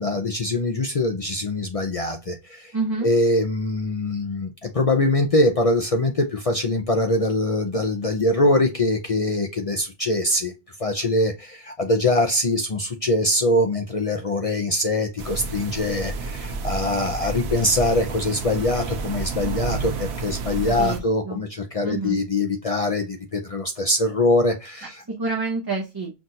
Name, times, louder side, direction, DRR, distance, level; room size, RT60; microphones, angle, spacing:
voice 1, 0.0-2.7 3.0-10.5 10.8-25.0, left 1 dB, 40° left, 0.6 m, -23 dB
voice 2, 2.7-3.1 20.7-21.4 21.8-22.2 25.1-26.1, right 3 dB, 25° right, 0.8 m, -28 dB
sound 1, 15.2-21.0, right 4 dB, 85° right, 0.9 m, -30 dB
5.9 x 2.5 x 2.7 m
omnidirectional pair, 1.1 m